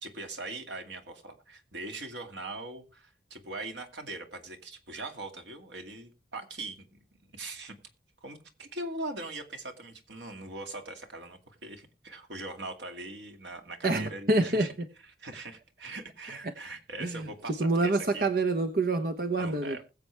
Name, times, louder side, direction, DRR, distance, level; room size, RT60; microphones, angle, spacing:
voice 1, 0.0-7.8 8.2-14.7 15.0-18.3 19.4-19.8, right 2 dB, 80° right, 4 dB, 2.3 m, -41 dB
voice 2, 13.8-14.7 17.0-19.8, right 2 dB, 55° right, 7 dB, 1.0 m, -27 dB
21.0 x 7.7 x 3.4 m, 0.31 s
head